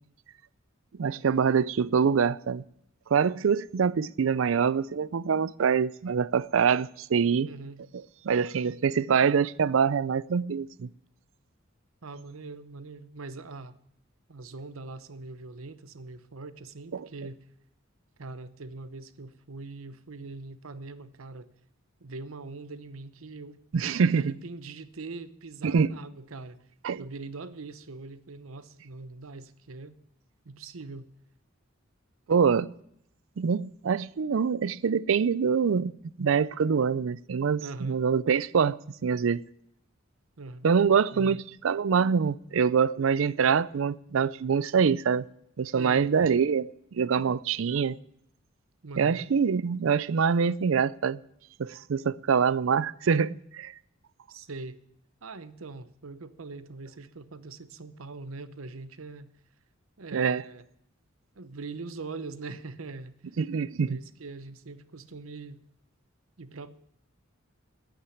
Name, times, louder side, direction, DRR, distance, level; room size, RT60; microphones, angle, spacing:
voice 1, 1.0-2.6 3.1-7.5 8.2-10.9 16.9-17.1 23.7-24.3 25.6-25.9 26.8-27.0 32.3-32.7 33.4-35.9 36.2-39.4 40.6-45.3 45.6-48.0 49.0-51.2 51.6-53.7 60.1-60.4 63.4-64.0, right 6 dB, 70° right, 0.4 m, -25 dB
voice 2, 7.4-7.8 12.0-13.8 14.3-17.4 18.2-21.5 22.0-23.6 24.1-26.6 27.0-30.0 30.4-31.1 37.6-38.0 40.4-40.7 41.1-41.5 45.7-46.2 48.8-49.3 54.3-54.8 55.2-59.3 60.0-60.6 61.4-63.2 63.8-65.6 66.4-66.8, right 3 dB, 90° right, 0.9 m, -42 dB
9.8 x 8.8 x 9.2 m
head